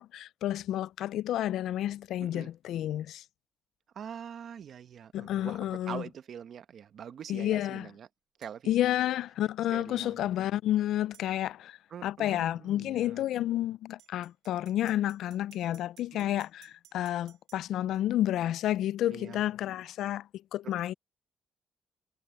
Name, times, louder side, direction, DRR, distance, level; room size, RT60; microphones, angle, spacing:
voice 1, 0.0-3.2 5.1-6.0 7.3-7.9 8.7-20.9, left 12 dB, 80° left, 0.4 m, -30 dB
voice 2, 2.2-2.5 3.9-5.6 5.9-8.1 8.4-8.9 9.7-10.3 11.9-13.2 16.1-16.4 19.1-19.4 20.6-20.7, right 8 dB, 60° right, 1.1 m, -44 dB
sound 1, 8.4-8.6 11.1-11.3 14.0-17.6, right 12 dB, 85° right, 2.2 m, -60 dB
cardioid pair, 90°, 0 cm